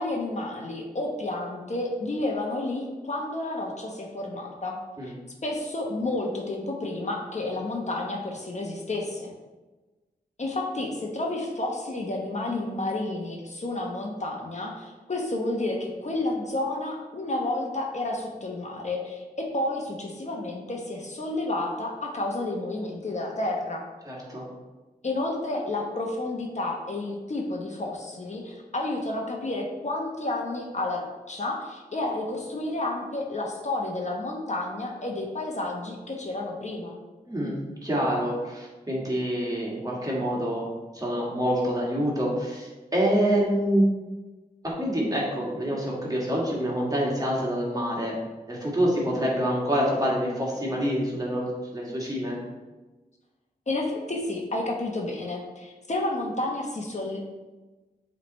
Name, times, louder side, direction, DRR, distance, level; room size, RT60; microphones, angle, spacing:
voice 1, 0.0-4.8 5.0-5.1 5.4-9.3 10.4-23.9 25.0-37.0 53.7-57.2, left 2 dB, 45° left, 0 dB, 1.0 m, -31 dB
voice 2, 24.0-24.5 37.3-37.6 37.8-40.7 40.9-43.9 44.6-48.2 48.5-52.4, equal, 25° right, -4 dB, 1.8 m, -26 dB
7.2 x 3.3 x 4.1 m, 1.2 s
wide cardioid pair, 65°, 16 cm